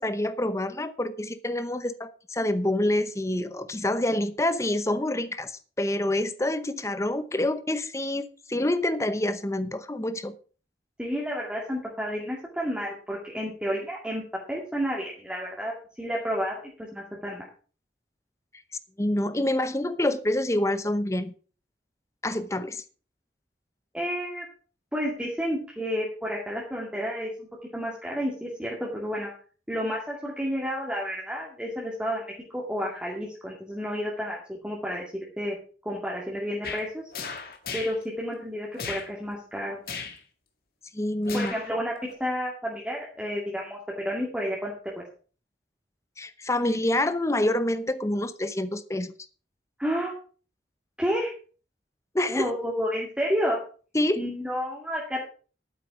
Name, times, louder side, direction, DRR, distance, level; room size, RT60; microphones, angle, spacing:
voice 1, 0.0-10.3 19.0-21.3 22.2-22.8 40.9-41.5 46.2-49.1 52.1-52.5 53.9-54.2, left 1 dB, 15° left, 13 dB, 0.8 m, -27 dB
voice 2, 11.0-14.2 14.5-16.6 16.9-17.5 23.9-24.5 24.9-27.5 27.7-29.3 29.7-32.2 32.5-35.6 35.8-37.0 37.7-39.8 41.3-41.9 42.2-43.8 44.0-45.0 49.8-50.2 51.0-51.3 52.3-53.6 54.2-55.2, equal, 5° right, -4 dB, 2.3 m, -30 dB
sound 1, 36.6-36.9 37.1-38.0 38.8-39.1 39.9-40.2 41.2-41.7 42.1-42.2, left 5 dB, 55° left, 2.0 m, -35 dB
11.5 x 9.2 x 4.8 m, 0.39 s
head